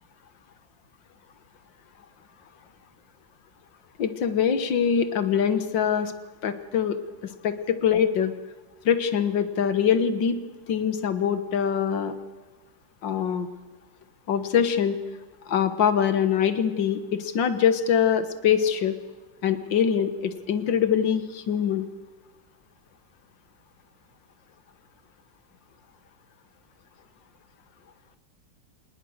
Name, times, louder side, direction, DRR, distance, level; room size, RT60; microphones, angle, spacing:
voice 1, 4.0-6.1 6.4-7.0 7.2-8.3 8.9-10.4 10.7-12.1 13.0-13.5 14.3-15.0 15.5-19.0 19.4-21.9, left 8 dB, 85° left, 11 dB, 2.1 m, -23 dB
26.5 x 19.5 x 6.6 m, 1.3 s
omnidirectional pair, 2.0 m